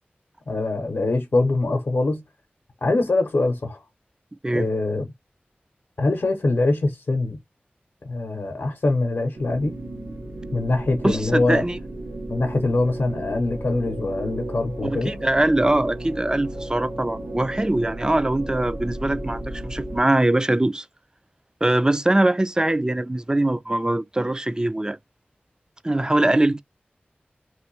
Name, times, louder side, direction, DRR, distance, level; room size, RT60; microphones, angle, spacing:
voice 1, 0.5-2.2 2.8-3.8 4.5-5.1 6.0-7.4 8.0-9.8 10.5-11.6 12.3-15.2, left 2 dB, 70° left, 0.7 m, -23 dB
sound 1, 9.3-20.0, right 1 dB, 85° right, 0.8 m, -34 dB
voice 2, 11.0-11.8 14.8-20.9 21.6-25.0 25.8-26.6, right 1 dB, 20° right, 0.3 m, -22 dB
3.1 x 2.6 x 3.0 m
wide cardioid pair, 65°, 4 cm